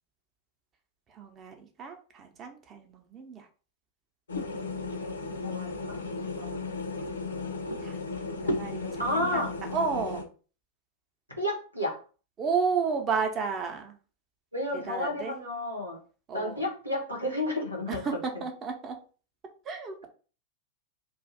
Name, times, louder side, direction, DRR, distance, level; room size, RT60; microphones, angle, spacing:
voice 1, 1.1-3.5 6.4-6.6 7.8-8.0 8.4-10.3 12.4-14.0 14.9-15.3 16.3-16.7 17.9-18.1 18.4-19.0 19.6-20.1, right 5 dB, 30° right, 4 dB, 0.7 m, -32 dB
sound 1, 4.3-10.2, left 3 dB, 70° left, 0.5 m, -34 dB
voice 2, 5.4-6.0 9.0-9.5 11.4-12.0 14.5-16.0 16.3-18.0, left 1 dB, 90° right, 0 dB, 1.1 m, -31 dB
2.6 x 2.4 x 3.8 m, 0.38 s
figure-of-eight pair, 90°, 0 cm